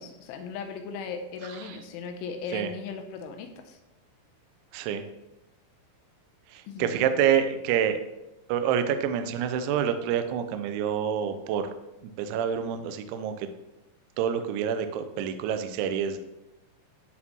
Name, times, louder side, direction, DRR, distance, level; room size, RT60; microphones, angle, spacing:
voice 1, 0.0-3.8 6.7-7.0, left 5 dB, 85° left, 5 dB, 2.9 m, -37 dB
voice 2, 4.7-5.0 6.5-8.0 8.5-11.7 12.2-13.5 14.2-16.2, right 8 dB, 85° right, 9 dB, 2.7 m, -27 dB
10.5 x 4.4 x 2.9 m, 0.95 s
omnidirectional pair, 5.9 m